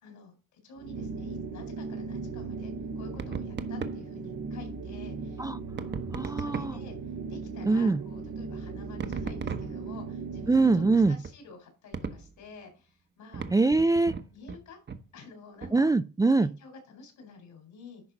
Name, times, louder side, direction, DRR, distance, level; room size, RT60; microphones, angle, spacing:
voice 1, 0.0-5.5 6.2-7.0 7.3-13.4 14.3-14.8 15.1-15.9 16.3-18.0, left 4 dB, 75° left, 4.7 m, -49 dB
sound 1, 0.8-11.2, right 4 dB, 75° right, 1.4 m, -37 dB
sound 2, 3.1-4.1 5.8-6.9 9.0-10.1 11.0-11.3 11.9-12.3 13.3-14.6 14.9-15.1 15.6-15.8, right 5 dB, 35° right, 1.1 m, -37 dB
voice 2, 6.1-6.8 7.6-8.0 10.5-11.2 13.5-14.1 15.7-16.5, right 3 dB, 10° right, 0.4 m, -23 dB
10.5 x 4.0 x 5.3 m
cardioid pair, 90°, 30 cm